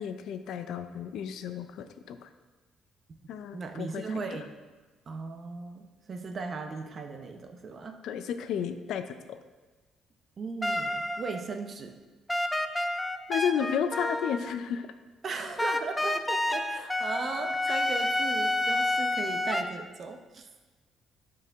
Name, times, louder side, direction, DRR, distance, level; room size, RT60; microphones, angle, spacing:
voice 1, 0.0-2.3 3.3-4.4 8.0-9.4 13.3-14.9 17.7-17.8, left 8 dB, 75° left, 9 dB, 0.5 m, -33 dB
voice 2, 3.5-4.4 5.1-8.0 10.4-12.0 15.2-20.5, right 4 dB, 40° right, 5 dB, 0.7 m, -37 dB
sound 1, 10.6-11.6 12.3-14.6 15.6-19.6, left 1 dB, 10° left, 0.5 m, -29 dB
11.0 x 4.7 x 3.6 m, 1.3 s
cardioid pair, 120°, 0 cm